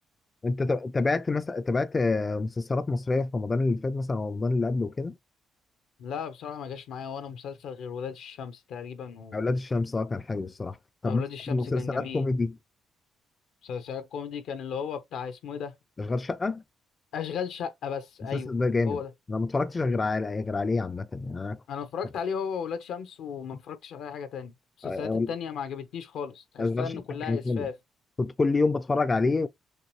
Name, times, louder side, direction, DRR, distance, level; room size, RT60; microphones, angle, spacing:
voice 1, 0.4-5.1 9.3-10.8 11.0-12.5 16.0-16.6 18.3-19.0 19.3-21.6 24.8-25.3 26.6-26.9 27.3-27.7 28.2-29.5, left 3 dB, 25° left, 0.5 m, -27 dB
voice 2, 6.0-9.4 11.0-12.3 13.6-15.7 17.1-18.5 18.8-19.1 21.7-24.5 24.8-27.8, left 7 dB, 80° left, 1.0 m, -35 dB
6.6 x 2.4 x 3.1 m
cardioid pair, 90°, 0 cm